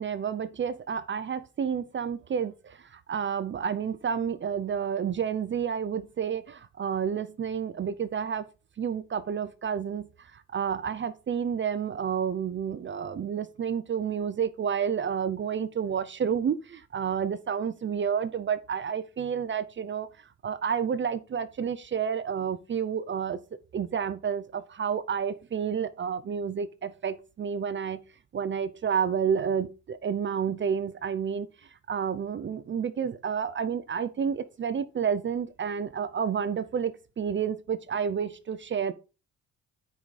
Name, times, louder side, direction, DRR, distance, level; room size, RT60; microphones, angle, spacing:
voice 1, 0.0-8.5 8.8-20.1 20.4-23.4 23.7-28.0 28.3-31.5 31.9-38.9, right 7 dB, 40° right, 0.6 m, -30 dB
9.2 x 4.9 x 4.0 m
cardioid pair, 90°, 30 cm